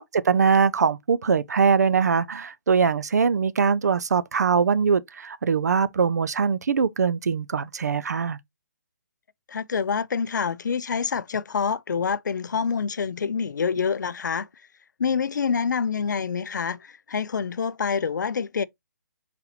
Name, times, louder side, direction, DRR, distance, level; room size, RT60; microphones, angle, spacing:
voice 1, 0.0-8.4, right 6 dB, 55° right, 0.4 m, -22 dB
voice 2, 9.5-14.5 15.0-18.6, left 6 dB, 70° left, 0.4 m, -26 dB
4.1 x 4.1 x 2.7 m
hypercardioid pair, 175°, 10 cm